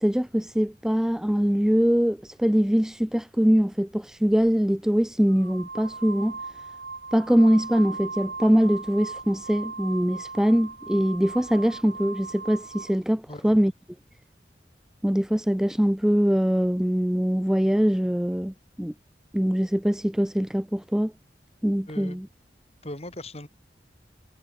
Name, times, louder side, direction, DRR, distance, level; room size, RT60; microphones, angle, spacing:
voice 1, 0.0-6.4 7.1-13.7 15.0-18.9 19.3-21.1 21.6-22.3, equal, 5° right, 0.3 m, -23 dB
sound 1, 4.3-4.5 5.3-13.0, right 4 dB, 65° right, 2.5 m, -39 dB
voice 2, 21.9-22.2 22.8-23.5, left 1 dB, 35° left, 6.0 m, -38 dB
head